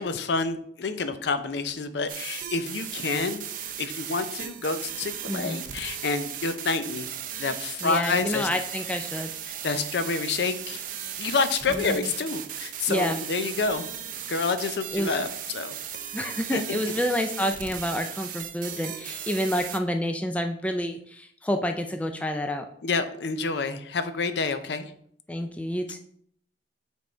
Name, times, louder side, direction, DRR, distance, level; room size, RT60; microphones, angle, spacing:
voice 1, 0.0-3.5 3.8-7.1 7.4-8.5 9.5-10.8 11.2-13.8 14.3-15.8 16.5-16.8 22.8-24.9, left 4 dB, 65° left, 10 dB, 0.5 m, -28 dB
sound 1, 2.1-19.8, right 9 dB, 50° right, 0.5 m, -37 dB
voice 2, 5.3-5.6 7.8-9.3 11.7-12.1 12.9-13.2 14.9-15.1 16.1-22.6 25.3-26.0, equal, 5° left, 6 dB, 0.3 m, -29 dB
6.2 x 3.5 x 4.3 m, 0.65 s
head